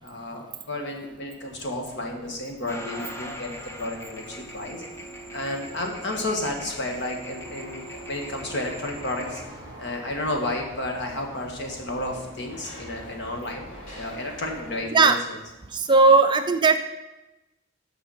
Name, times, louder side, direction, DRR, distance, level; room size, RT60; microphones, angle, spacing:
voice 1, 0.0-4.8 5.3-9.4 9.8-13.7 13.9-15.2, left 1 dB, 55° left, 1 dB, 1.7 m, -32 dB
sound 1, 1.1-14.8, equal, 90° left, 3.6 m, -46 dB
sound 2, 2.7-9.4, equal, 15° left, 0.8 m, -40 dB
voice 2, 15.7-16.8, right 4 dB, 20° right, 7 dB, 0.4 m, -17 dB
12.5 x 5.6 x 4.3 m, 1.0 s
head